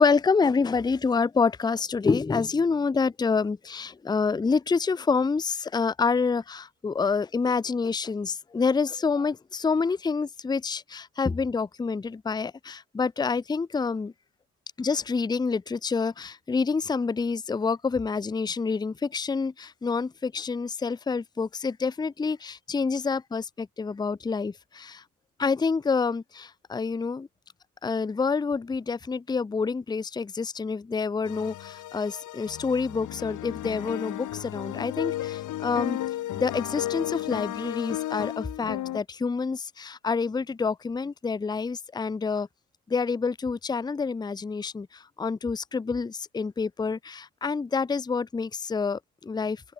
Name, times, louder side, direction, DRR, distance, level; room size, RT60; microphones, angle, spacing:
voice 1, 0.0-14.1 14.8-25.0 25.4-27.3 27.8-36.0 36.3-42.5 42.9-49.6, left 5 dB, 15° left, 0.5 m, -27 dB
sound 1, 31.2-39.0, left 14 dB, 80° left, 2.8 m, -34 dB
cardioid pair, 90°, 30 cm